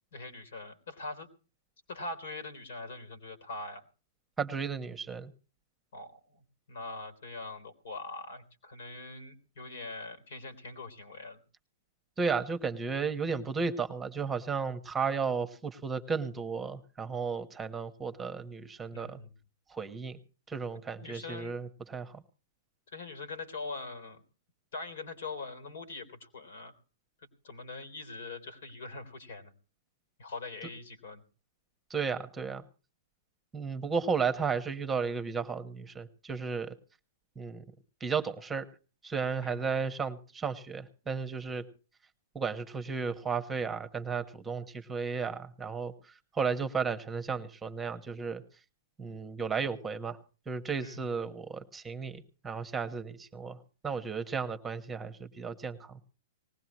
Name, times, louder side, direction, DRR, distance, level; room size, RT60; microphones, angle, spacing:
voice 1, 0.1-1.3 1.9-3.8 5.9-11.4 18.9-19.3 21.0-21.5 22.9-24.2 24.7-26.7 27.4-29.5 30.2-31.2 39.4-39.6 50.8-51.0, left 3 dB, 65° left, 8 dB, 3.4 m, -42 dB
voice 2, 4.4-5.3 12.2-19.2 19.7-20.2 20.5-22.2 31.9-32.6 33.5-36.7 37.3-37.6 38.0-38.7 39.0-41.6 42.3-48.4 49.0-50.2 50.5-56.0, right 5 dB, 15° right, 9 dB, 1.3 m, -34 dB
20.0 x 18.0 x 3.1 m, 0.36 s
hypercardioid pair, 115°, 0 cm